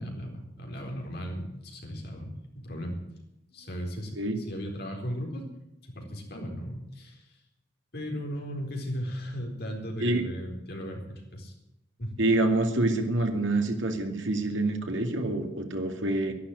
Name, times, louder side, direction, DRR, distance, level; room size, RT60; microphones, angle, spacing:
voice 1, 0.0-3.0 3.5-5.4 5.9-7.2 7.9-11.5 12.0-12.2, equal, 50° left, 1 dB, 4.1 m, -36 dB
voice 2, 12.2-16.3, right 2 dB, 70° right, 5 dB, 2.3 m, -26 dB
12.0 x 11.5 x 9.5 m, 0.87 s
head